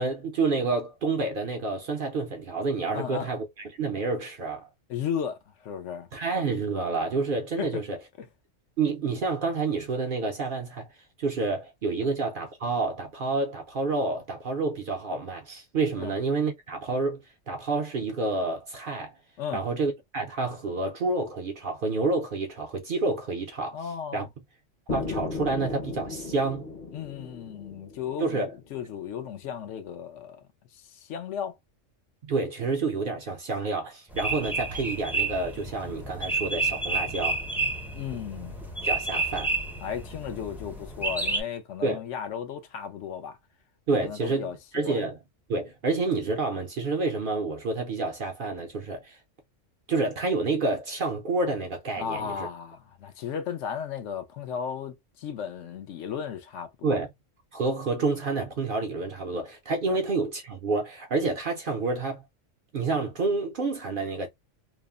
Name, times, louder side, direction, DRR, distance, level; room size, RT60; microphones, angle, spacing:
voice 1, 0.0-4.7 6.1-8.0 8.8-10.9 11.2-19.1 19.5-24.3 24.9-26.7 28.2-28.5 32.2-37.4 38.8-39.5 41.8-42.0 43.9-45.2 45.5-49.2 49.9-52.5 56.8-57.1 57.5-62.2 62.7-64.3, right 3 dB, 55° right, 0.6 m, -29 dB
voice 2, 2.9-3.3 4.9-6.1 7.6-7.8 8.2-8.3 16.0-16.1 19.4-19.6 23.7-24.3 26.9-30.4 30.7-31.6 37.9-38.6 39.8-43.4 44.0-44.6 44.8-45.0 52.0-57.0 59.9-60.0, left 8 dB, 75° left, 0.9 m, -35 dB
sound 1, 24.9-28.8, left 4 dB, 45° left, 0.8 m, -36 dB
sound 2, 34.1-41.4, right 3 dB, ahead, 0.4 m, -30 dB
3.0 x 2.0 x 2.3 m
omnidirectional pair, 1.3 m